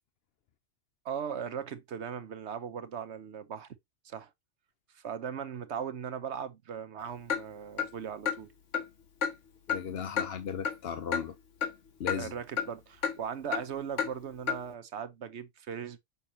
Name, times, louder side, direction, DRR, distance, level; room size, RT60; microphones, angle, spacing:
voice 1, 1.0-3.7 4.0-4.3 4.9-8.5 12.2-16.0, right 8 dB, 70° right, 1.2 m, -38 dB
Clock, 7.3-7.4 7.8-7.9 8.3-8.4 8.7-8.9 9.2-9.3 9.7-9.8 10.2-10.3 10.6-10.8 11.1-11.2 11.6-11.7 12.1-12.2 12.6-12.7 13.0-13.2 13.5-13.6 14.0-14.1 14.5-14.6, left 7 dB, 85° left, 1.8 m, -30 dB
voice 2, 9.7-11.4 12.0-12.3, left 7 dB, 60° left, 0.9 m, -36 dB
6.8 x 6.0 x 2.8 m
omnidirectional pair, 1.2 m